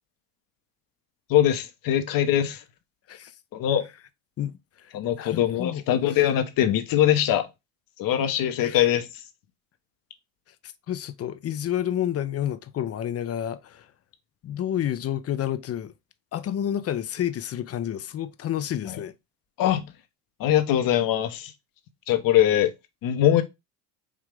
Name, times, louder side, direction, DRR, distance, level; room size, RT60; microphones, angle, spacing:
voice 1, 1.3-2.6 3.5-3.9 4.9-7.5 8.0-9.2 18.8-19.0 19.6-19.9 20.4-21.5 22.1-22.7 23.0-23.4, left 11 dB, 60° left, 1.0 m, -22 dB
voice 2, 4.4-6.2 8.6-8.9 10.9-13.9 14.4-15.9 16.3-19.1, left 10 dB, 40° left, 0.6 m, -30 dB
4.9 x 2.8 x 3.6 m
supercardioid pair, 75°, 38 cm